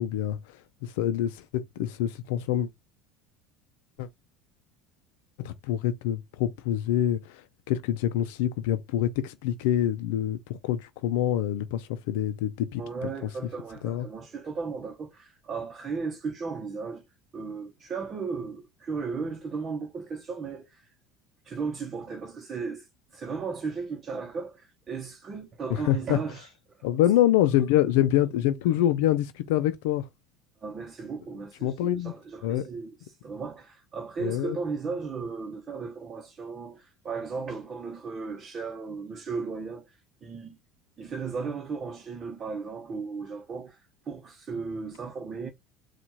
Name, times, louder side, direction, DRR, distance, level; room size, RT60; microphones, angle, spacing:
voice 1, 0.0-2.7 4.0-4.1 5.4-12.8 13.8-14.1 25.7-26.2 26.8-30.1 31.6-32.1 32.4-32.7 34.2-34.6, left 12 dB, 80° left, 0.5 m, -26 dB
voice 2, 12.8-17.0 17.3-20.9 21.4-26.8 30.6-40.6 41.0-45.5, right 5 dB, 35° right, 0.9 m, -36 dB
4.4 x 2.4 x 4.1 m
supercardioid pair, 115°, 0 cm